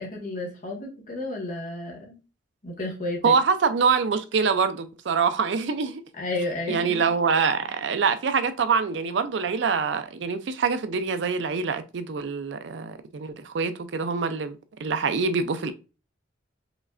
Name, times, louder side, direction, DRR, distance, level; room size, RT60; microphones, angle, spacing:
voice 1, 0.0-2.2 2.6-3.3 6.2-7.0, left 2 dB, 45° left, 1.5 m, -32 dB
voice 2, 3.2-6.0 6.7-15.7, right 5 dB, 70° right, 0.4 m, -25 dB
5.0 x 3.2 x 2.5 m
head